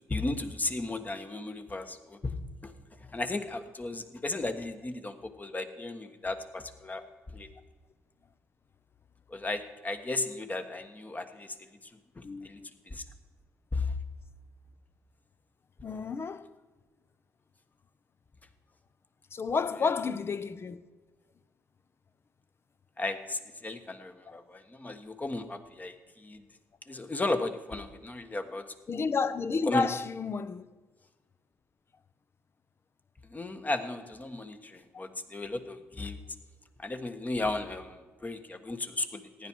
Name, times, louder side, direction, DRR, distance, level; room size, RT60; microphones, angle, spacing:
voice 1, 0.1-2.3 2.6-2.7 3.1-7.0 7.3-7.5 9.3-11.6 12.2-12.6 12.9-13.0 13.7-13.9 23.0-26.4 26.9-28.6 29.7-30.0 33.3-36.2 36.8-39.5, left 2 dB, 25° left, 1.4 m, -35 dB
voice 2, 12.2-12.7 15.8-16.5 19.3-20.8 24.3-24.4 28.9-30.7, left 5 dB, 40° left, 0.8 m, -31 dB
15.5 x 10.0 x 4.7 m
supercardioid pair, 55°, 6 cm